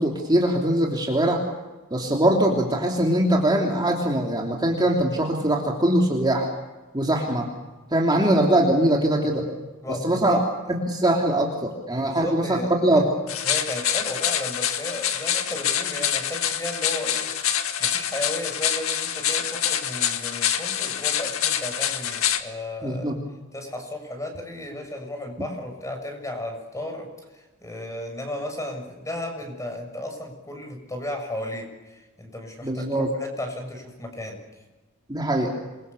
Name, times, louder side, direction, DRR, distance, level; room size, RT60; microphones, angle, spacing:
voice 1, 0.0-1.4 1.9-6.5 6.9-7.5 7.9-9.5 10.0-10.4 10.7-13.1 22.8-23.1 32.6-33.1 35.1-35.5, right 1 dB, 20° right, 0 dB, 3.2 m, -22 dB
voice 2, 9.8-10.4 12.0-13.1 13.4-23.1 23.5-27.1 27.3-34.4, left 1 dB, 15° left, 4 dB, 6.8 m, -34 dB
sound 1, 13.3-22.4, left 10 dB, 80° left, 1.9 m, -26 dB
27.5 x 23.5 x 7.0 m, 1.1 s
head